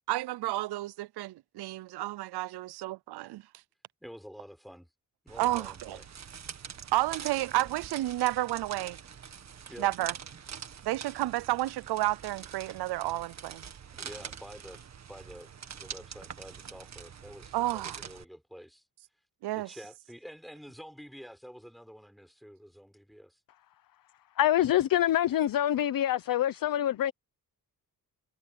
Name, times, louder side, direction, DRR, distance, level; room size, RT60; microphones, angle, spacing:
voice 1, 0.1-3.4 5.4-6.0 6.9-9.0 9.8-10.1 10.8-13.6 17.5-18.0 19.4-19.7, right 16 dB, 80° right, 0.5 m, -31 dB
voice 2, 4.0-4.9 5.2-6.1 9.7-9.9 13.9-18.8 19.5-23.4, equal, ahead, 4.6 m, -48 dB
sound 1, 5.3-18.2, right 7 dB, 45° right, 1.7 m, -45 dB
voice 3, 24.4-27.1, left 12 dB, 60° left, 0.8 m, -25 dB
wide cardioid pair, 145°, 39 cm